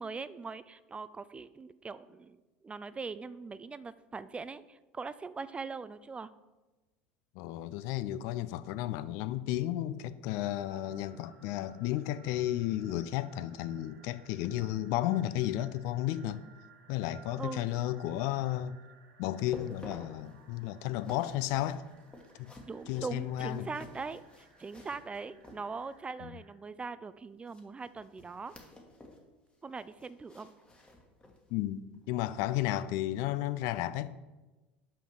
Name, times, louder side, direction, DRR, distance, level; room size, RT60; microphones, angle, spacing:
voice 1, 0.0-2.4 2.6-6.3 17.4-17.6 22.7-28.5 29.6-30.5, right 4 dB, 20° right, 0.4 m, -41 dB
voice 2, 7.4-16.4 16.9-18.8 19.2-21.8 22.4-22.5 22.9-23.7 26.2-26.4 31.5-34.1, left 13 dB, 60° left, 0.4 m, -33 dB
sound 1, 10.4-26.5, right 5 dB, 70° right, 1.5 m, -61 dB
sound 2, 19.3-26.1 27.4-29.3 29.5-31.5 31.9-32.1 32.6-32.7, left 1 dB, 20° left, 1.6 m, -52 dB
5.8 x 5.2 x 6.5 m
hypercardioid pair, 80°, 6 cm